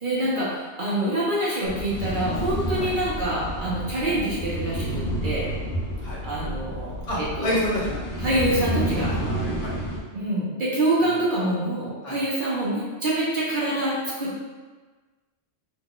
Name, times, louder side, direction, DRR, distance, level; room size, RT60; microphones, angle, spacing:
voice 1, 0.0-5.5 6.2-7.6 8.2-9.2 10.1-14.4, right 1 dB, 50° right, -7 dB, 0.8 m, -26 dB
sound 1, 1.6-10.0, equal, 80° left, 1.1 m, -30 dB
voice 2, 7.1-8.0 9.2-9.8 12.0-12.1, left 1 dB, 60° left, -6 dB, 1.0 m, -28 dB
2.9 x 2.3 x 3.7 m, 1.3 s
omnidirectional pair, 1.2 m